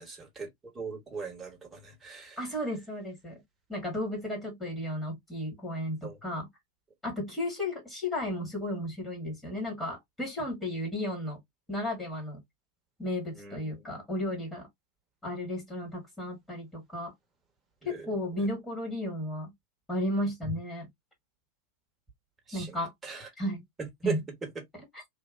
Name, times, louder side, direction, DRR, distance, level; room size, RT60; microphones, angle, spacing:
voice 1, 0.0-2.4 6.0-6.2 13.3-13.9 17.8-18.5 20.4-20.5 22.5-23.3 23.8-24.6, right 4 dB, 15° right, 1.3 m, -39 dB
voice 2, 2.4-3.4 3.7-6.5 7.0-11.4 11.7-12.4 13.0-14.7 15.2-17.1 17.8-19.5 19.9-20.9 22.5-22.9 23.4-23.6 24.0-24.2, left 1 dB, 10° left, 1.9 m, -34 dB
3.3 x 2.7 x 2.5 m
figure-of-eight pair, 90°, 0 cm